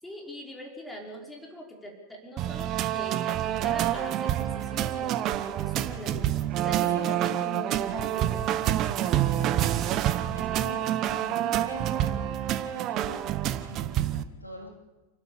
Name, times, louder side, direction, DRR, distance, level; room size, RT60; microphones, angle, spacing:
voice 1, 0.0-8.5, equal, 5° left, 0 dB, 5.3 m, -42 dB
sound 1, 2.4-14.2, right 12 dB, 35° right, 1.1 m, -27 dB
voice 2, 6.7-7.4 8.9-13.2 13.7-14.8, equal, 85° left, 2 dB, 3.5 m, -45 dB
29.0 x 12.0 x 8.7 m, 1.2 s
figure-of-eight pair, 90°, 0 cm